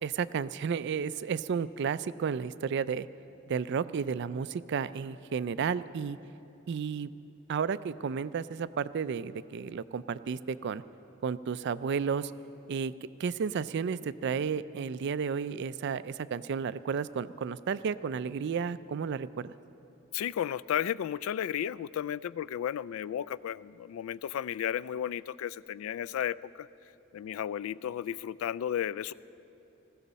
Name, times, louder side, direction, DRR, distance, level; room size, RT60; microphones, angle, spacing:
voice 1, 0.0-3.1 3.5-6.2 6.7-7.1 7.5-10.8 11.2-12.3 12.7-12.9 13.2-19.5, right 6 dB, 60° right, 16 dB, 0.4 m, -32 dB
voice 2, 20.1-26.7 27.1-29.1, left 10 dB, 90° left, 18 dB, 0.3 m, -33 dB
19.5 x 15.0 x 4.1 m, 2.9 s
head